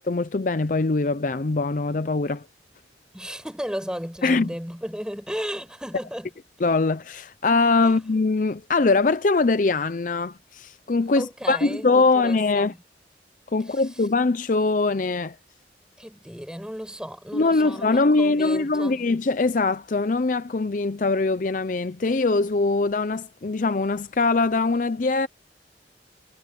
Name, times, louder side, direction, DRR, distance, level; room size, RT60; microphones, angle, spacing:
voice 1, 0.1-2.4 4.2-4.5 6.6-12.7 13.5-15.4 17.3-25.3, left 3 dB, 45° left, 0.5 m, -22 dB
voice 2, 3.1-6.3 7.8-8.0 11.1-12.7 13.7-13.8 16.0-19.0, equal, 5° right, 6.1 m, -34 dB
head